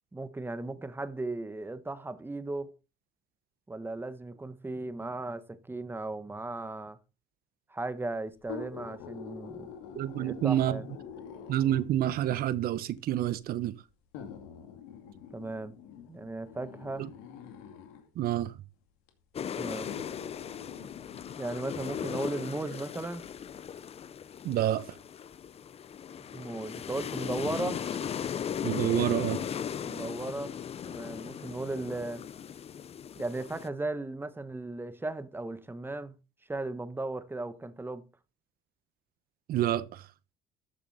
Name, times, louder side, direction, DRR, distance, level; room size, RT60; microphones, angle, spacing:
voice 1, 0.1-2.7 3.7-7.0 7.7-9.7 10.2-10.9 15.3-15.7 16.1-17.1 19.6-19.9 21.4-23.2 26.3-27.8 29.8-30.6 30.9-32.2 33.2-36.2 36.5-38.0, right 2 dB, 15° right, 1.2 m, -36 dB
sound 1, 8.4-12.1 13.0-13.1 14.1-18.1 19.1-19.2 19.8-22.5 22.9-23.0, left 7 dB, 90° left, 2.5 m, -46 dB
voice 2, 9.9-10.8 11.5-13.7 17.0-17.1 18.2-18.5 24.4-25.0 28.6-29.4 39.5-40.0, right 12 dB, 60° right, 1.1 m, -28 dB
sound 2, 19.3-33.7, left 8 dB, 35° left, 0.7 m, -37 dB
13.5 x 7.0 x 4.2 m
supercardioid pair, 90°, 17 cm